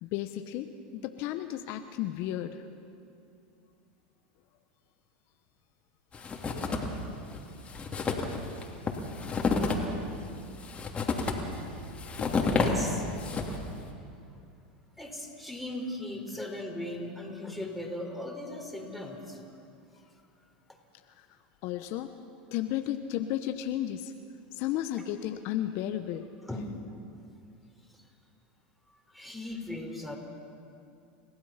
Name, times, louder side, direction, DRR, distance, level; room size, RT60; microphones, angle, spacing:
voice 1, 0.0-2.7 12.2-12.3 21.2-21.3 21.6-22.2 22.5-24.1 24.5-26.3, left 12 dB, 55° left, 8 dB, 1.0 m, -33 dB
sound 1, 6.1-7.0 7.3-7.4 7.7-13.7, left 4 dB, 25° left, 2.9 m, -30 dB
voice 2, 12.4-13.1 15.0-19.4 26.5-26.7 28.9-30.2, left 1 dB, ahead, 2 dB, 4.0 m, -38 dB
30.0 x 16.0 x 5.8 m, 2.5 s
hypercardioid pair, 100°, 5 cm